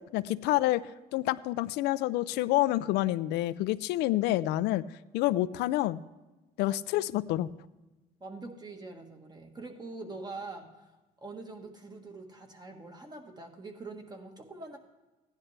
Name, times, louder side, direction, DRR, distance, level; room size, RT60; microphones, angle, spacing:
voice 1, 0.0-4.8 5.1-6.0 6.6-7.5, left 16 dB, 85° left, 15 dB, 0.4 m, -28 dB
voice 2, 8.2-10.9 11.2-14.8, right 3 dB, 25° right, 4 dB, 1.5 m, -44 dB
15.5 x 10.5 x 3.3 m, 1.1 s
cardioid pair, 110°, 17 cm